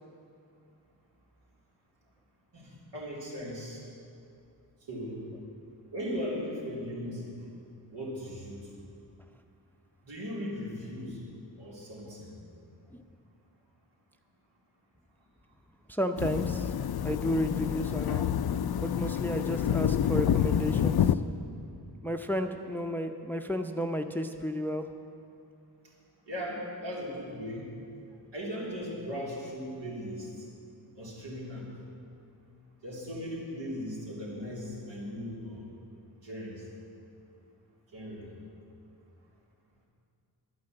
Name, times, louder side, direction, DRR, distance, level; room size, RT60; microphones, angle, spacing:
voice 1, 2.5-3.8 4.9-5.2 5.9-7.3 7.9-8.6 10.0-11.2 11.6-12.3 26.3-27.7 28.3-30.3 31.0-31.7 32.8-35.7 36.2-36.6 37.9-38.3, equal, 80° right, -6 dB, 3.8 m, -38 dB
voice 2, 15.9-16.7 17.0-18.3 18.8-21.1 22.0-24.9, equal, 5° left, 7 dB, 0.6 m, -32 dB
sound 1, 16.2-21.2, left 9 dB, 60° left, 0.5 m, -28 dB
11.5 x 9.6 x 7.8 m, 2.5 s
wide cardioid pair, 80°, 42 cm